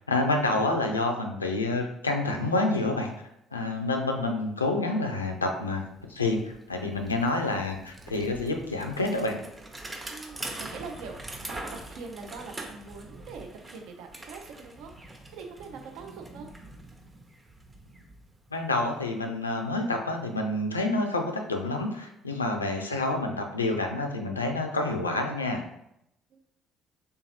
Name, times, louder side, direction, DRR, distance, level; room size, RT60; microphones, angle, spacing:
voice 1, 0.1-3.1 3.5-5.8 6.1-9.4 18.5-25.6, left 2 dB, 85° left, 3 dB, 0.3 m, -28 dB
Bicycle, 5.6-5.7 6.0-18.9, right 2 dB, 20° right, 0.7 m, -44 dB
voice 2, 10.1-16.5 22.5-22.8 26.3-26.4, right 4 dB, 60° right, 4 dB, 0.4 m, -43 dB
3.3 x 2.8 x 2.8 m, 0.77 s
figure-of-eight pair, 50°, 0 cm